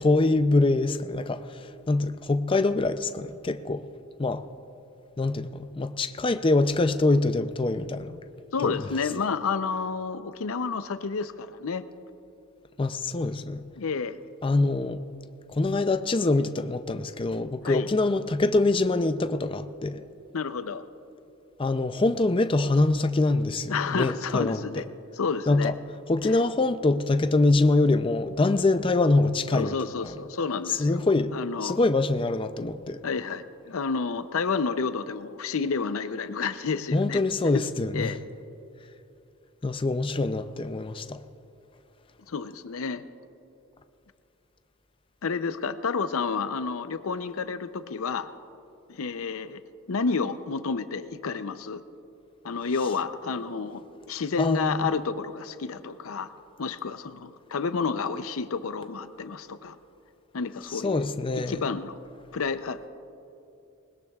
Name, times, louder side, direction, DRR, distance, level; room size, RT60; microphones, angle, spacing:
voice 1, 0.0-3.8 4.2-4.5 5.2-8.2 8.6-8.8 12.8-13.7 14.4-15.0 15.5-20.0 21.6-24.8 25.5-25.8 26.1-29.8 30.0-30.1 30.7-31.3 31.6-33.0 36.9-38.1 39.6-41.2 54.4-54.9 60.7-61.6, left 2 dB, 25° left, 0.4 m, -24 dB
voice 2, 8.5-11.8 13.8-14.2 17.7-17.9 20.3-20.8 23.7-24.9 25.1-25.7 29.5-31.0 31.3-31.8 33.0-37.2 37.5-37.7 37.9-38.2 42.3-43.1 45.2-48.3 48.9-49.6 49.9-51.8 52.4-56.3 56.6-59.8 60.3-61.1 61.4-62.0 62.3-62.9, left 5 dB, 75° left, 0.6 m, -30 dB
20.5 x 20.5 x 2.4 m
head